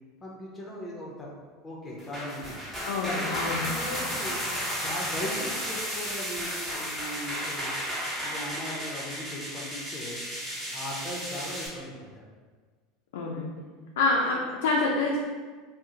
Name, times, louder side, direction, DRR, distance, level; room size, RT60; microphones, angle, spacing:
voice 1, 0.2-1.3 1.6-2.6 3.0-4.4 4.8-7.7 8.2-10.2 10.7-12.2, left 1 dB, 15° left, -3 dB, 0.7 m, -38 dB
sound 1, 2.0-11.7, equal, 10° right, 1.1 m, -33 dB
voice 2, 2.8-3.6 13.1-13.4 14.0-15.2, left 3 dB, 80° left, -2 dB, 0.3 m, -26 dB
2.7 x 2.0 x 3.7 m, 1.5 s
hypercardioid pair, 95°, 0 cm